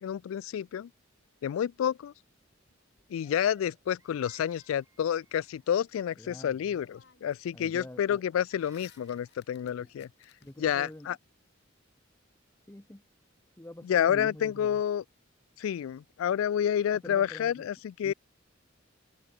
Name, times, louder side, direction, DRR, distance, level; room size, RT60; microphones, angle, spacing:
voice 1, 0.0-0.9 1.4-2.1 3.1-10.1 10.6-11.2 13.8-15.0 15.6-18.1, left 9 dB, 90° left, 0.3 m, -29 dB
sound 1, 2.7-4.0 6.2-6.3 6.7-7.5 7.8-11.0, left 8 dB, 60° left, 2.3 m, -62 dB
Crying sobbing, 3.2-5.7 8.0-9.4, right 3 dB, 15° right, 2.2 m, -62 dB
voice 2, 6.2-6.8 7.5-8.2 9.6-10.1 10.4-11.1 12.7-13.0 13.6-14.8 17.0-17.7 18.0-18.1, left 1 dB, 10° left, 0.8 m, -46 dB
head